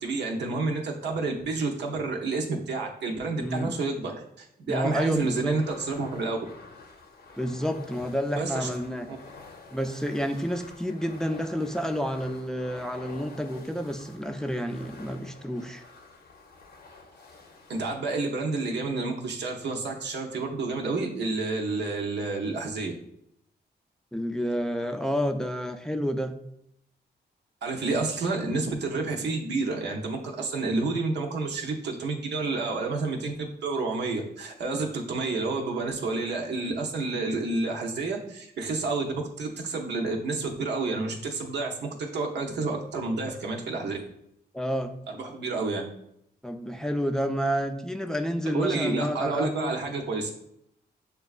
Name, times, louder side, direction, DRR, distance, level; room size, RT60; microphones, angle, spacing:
voice 1, 0.0-4.1 4.4-6.4 8.4-8.7 9.1-9.2 17.7-22.9 27.6-44.0 45.1-45.9 48.5-50.3, right 3 dB, 80° right, 1 dB, 0.7 m, -29 dB
voice 2, 3.4-3.7 4.7-5.6 7.3-9.1 9.7-15.8 24.1-26.4 44.5-44.9 46.4-49.7, equal, 5° left, 6 dB, 0.3 m, -29 dB
sound 1, 5.0-18.0, left 3 dB, 65° left, 0.6 m, -48 dB
6.4 x 2.3 x 2.4 m, 0.75 s
cardioid pair, 80°, 18 cm